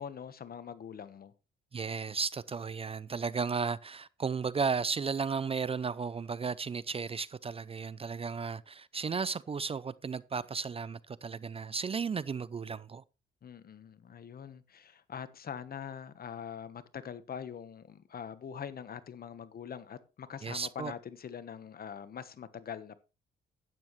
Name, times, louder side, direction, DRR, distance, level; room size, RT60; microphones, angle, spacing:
voice 1, 0.0-1.3 13.4-23.0, left 8 dB, 50° left, 1.2 m, -43 dB
voice 2, 1.7-13.0 20.4-20.9, right 5 dB, 30° right, 0.5 m, -34 dB
12.0 x 9.4 x 3.1 m
cardioid pair, 90°, 20 cm